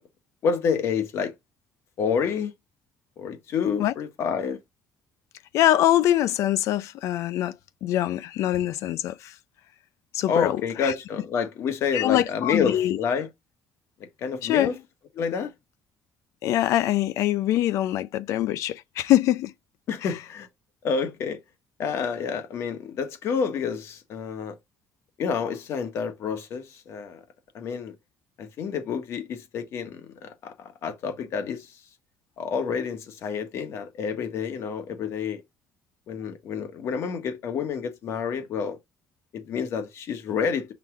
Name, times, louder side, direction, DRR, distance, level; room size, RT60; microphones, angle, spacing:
voice 1, 0.4-1.3 2.0-2.5 3.2-4.6 10.3-13.3 14.2-14.8 15.2-15.5 19.9-20.5 20.8-21.4 21.8-24.6 25.2-27.2 27.5-27.9 28.4-31.7 32.4-35.4 36.1-38.8 39.3-40.7, left 6 dB, 60° left, 1.5 m, -28 dB
voice 2, 5.5-7.6 7.8-9.3 10.1-10.9 11.9-13.0 14.4-14.8 16.4-19.5, left 13 dB, 75° left, 0.6 m, -23 dB
5.9 x 3.5 x 4.7 m
cardioid pair, 140°, 5 cm